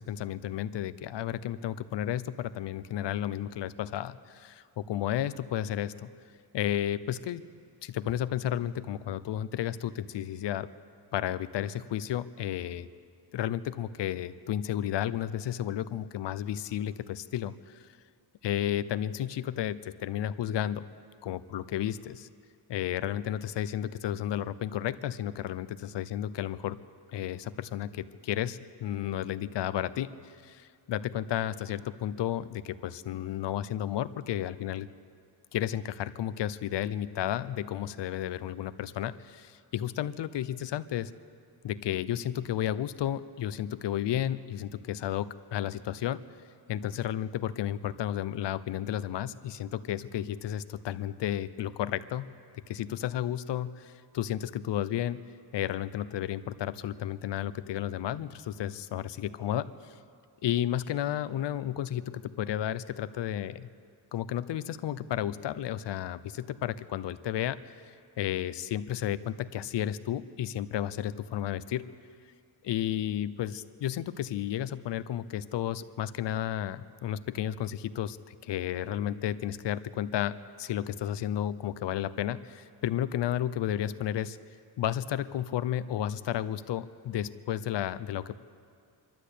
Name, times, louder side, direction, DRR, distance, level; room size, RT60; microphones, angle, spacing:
voice 1, 0.0-6.1 6.5-7.4 7.8-10.7 11.1-12.9 13.3-17.9 18.4-20.9 21.2-22.3 22.7-26.8 27.1-34.9 35.5-41.1 41.6-46.2 46.7-52.3 52.7-55.2 55.5-59.9 60.4-63.7 64.1-71.9 72.6-84.4 84.8-88.4, left 11 dB, 90° left, 15 dB, 0.7 m, -32 dB
26.5 x 12.5 x 8.3 m, 2.3 s
wide cardioid pair, 175°, 41 cm